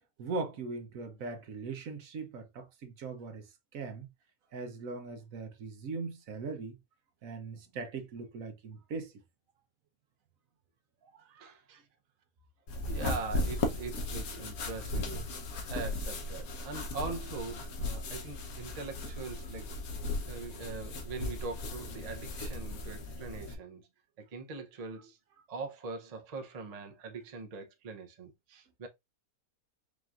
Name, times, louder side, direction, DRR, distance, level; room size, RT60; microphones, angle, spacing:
voice 1, 0.2-3.5 3.7-4.1 4.5-6.8 7.2-9.1 11.1-11.5, right 4 dB, 70° right, 1.1 m, -40 dB
voice 2, 11.4-11.8 12.9-19.7 20.2-23.9 24.2-28.9, right 4 dB, 40° right, 0.6 m, -42 dB
sound 1, 12.7-23.5, left 2 dB, 75° left, 1.4 m, -37 dB
5.0 x 3.0 x 2.4 m
omnidirectional pair, 1.5 m